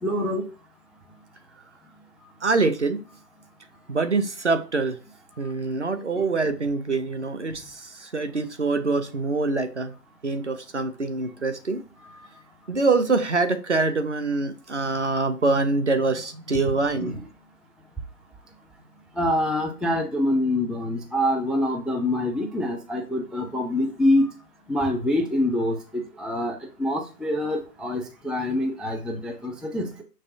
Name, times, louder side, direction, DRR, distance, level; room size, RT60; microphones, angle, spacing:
voice 1, 0.0-0.5 5.4-5.5 12.0-12.3 17.0-17.2 19.2-24.3 24.7-30.0, left 1 dB, ahead, 0.3 m, -25 dB
voice 2, 2.4-3.0 3.9-5.0 5.4-9.9 10.2-11.8 12.7-17.1, right 3 dB, 50° right, 0.5 m, -24 dB
6.2 x 3.2 x 2.6 m
hypercardioid pair, 175°, 48 cm